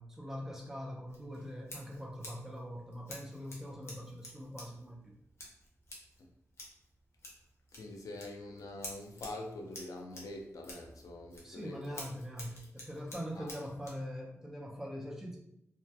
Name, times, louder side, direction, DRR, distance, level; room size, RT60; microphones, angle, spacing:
voice 1, 0.0-5.2 11.4-15.4, equal, 5° right, -1 dB, 0.5 m, -43 dB
Scissors, 1.1-14.0, left 1 dB, 50° left, 0.7 m, -52 dB
voice 2, 7.7-12.1 13.4-13.5, left 2 dB, 85° left, 2 dB, 0.4 m, -45 dB
2.7 x 2.2 x 2.2 m, 0.79 s
wide cardioid pair, 120°, 6 cm